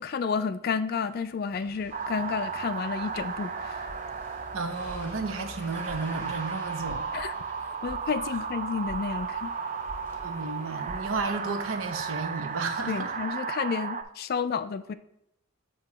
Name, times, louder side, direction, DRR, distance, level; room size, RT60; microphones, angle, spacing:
voice 1, 0.0-3.9 7.1-7.3 7.8-9.5 12.9-14.9, left 5 dB, 45° left, 13 dB, 0.3 m, -31 dB
sound 1, 1.5-13.3, left 2 dB, 10° left, 0.9 m, -50 dB
sound 2, 1.9-14.0, right 5 dB, 35° right, 0.3 m, -35 dB
sound 3, 3.1-11.3, equal, 5° right, 1.4 m, -49 dB
voice 2, 4.5-7.1 10.2-13.1, right 3 dB, 70° right, 7 dB, 0.7 m, -33 dB
6.7 x 2.9 x 5.7 m, 0.81 s
head